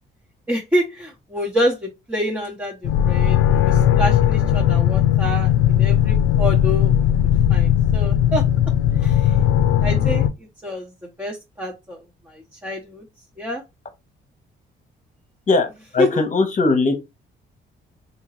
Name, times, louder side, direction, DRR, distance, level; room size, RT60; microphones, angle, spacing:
voice 1, 0.5-2.8 3.0-7.0 7.5-8.4 9.0-9.3 9.8-10.3 10.6-10.9 11.2-12.0 12.3-13.0 13.4-13.6 16.0-16.2, left 1 dB, 10° right, 1.0 m, -26 dB
sound 1, 2.8-10.3, left 10 dB, 90° left, 0.5 m, -17 dB
voice 2, 15.5-17.0, left 3 dB, 40° left, 1.0 m, -19 dB
3.6 x 2.9 x 3.1 m
cardioid pair, 90°, 20 cm